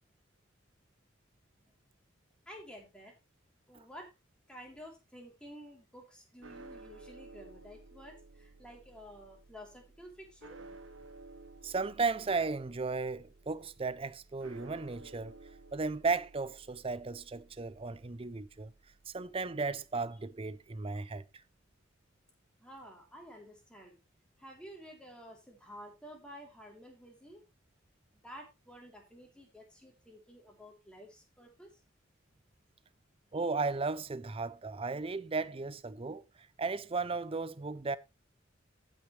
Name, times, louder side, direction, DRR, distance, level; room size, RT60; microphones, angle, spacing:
voice 1, 2.4-3.1 3.7-4.1 4.5-10.6 22.6-24.0 24.4-27.4 28.1-31.7, equal, 5° left, 3.3 m, -51 dB
sound 1, 6.4-20.7, right 3 dB, 75° right, 1.6 m, -55 dB
voice 2, 11.6-15.4 15.7-18.7 19.1-21.2 33.3-36.2 36.6-38.0, right 4 dB, 30° right, 0.5 m, -35 dB
15.0 x 6.4 x 3.2 m
head